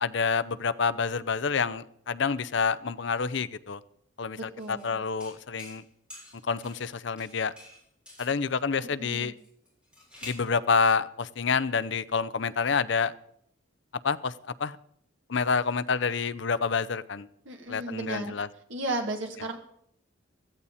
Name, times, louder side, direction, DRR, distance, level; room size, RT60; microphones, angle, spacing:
voice 1, 0.0-3.8 4.2-5.8 6.4-7.5 8.2-9.3 10.2-13.1 14.0-14.3 14.6-14.8 15.3-17.3 17.7-18.5, left 5 dB, 60° left, 16 dB, 0.6 m, -28 dB
voice 2, 4.4-5.0 9.0-9.3 17.4-18.3 18.7-19.6, right 2 dB, 70° right, 2 dB, 2.7 m, -34 dB
sound 1, 4.6-4.9 5.2-5.8 6.1-6.9 7.2-8.4 9.4-10.5, left 1 dB, 5° right, 7.3 m, -48 dB
16.0 x 15.0 x 4.2 m, 0.72 s
head